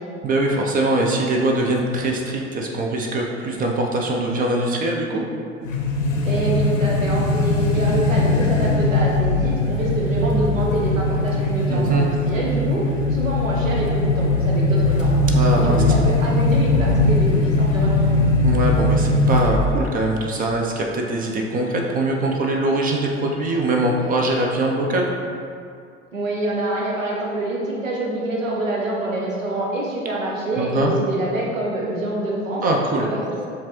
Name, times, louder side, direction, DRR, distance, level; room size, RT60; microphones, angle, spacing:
voice 1, 0.2-5.2 11.7-12.0 15.3-15.8 18.4-25.1 30.6-30.9 32.6-33.0, right 2 dB, 25° right, 0 dB, 0.4 m, -22 dB
sound 1, 5.6-19.9, left 2 dB, 85° left, 0.6 m, -20 dB
voice 2, 6.2-15.2 15.5-18.2 26.1-32.6 33.0-33.5, right 2 dB, 85° right, -3 dB, 0.9 m, -26 dB
7.2 x 2.5 x 2.9 m, 2.4 s
figure-of-eight pair, 75°, 38 cm